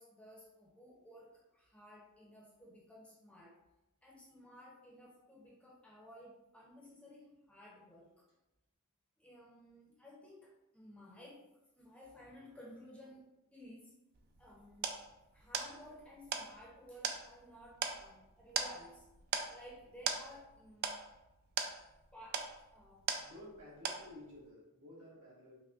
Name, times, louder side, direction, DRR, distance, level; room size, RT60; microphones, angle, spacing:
voice 1, 0.0-3.6 4.0-8.3 9.2-11.4 11.8-13.2 13.5-13.9 14.4-15.0 15.3-19.0 19.5-21.0 22.1-23.1, equal, 5° left, -4 dB, 0.6 m, -56 dB
sound 1, 14.1-23.6 23.8-24.4, right 6 dB, 45° right, 0.3 m, -40 dB
voice 2, 23.2-25.6, left 1 dB, 65° right, -5 dB, 1.4 m, -54 dB
5.7 x 2.1 x 2.4 m, 0.94 s
head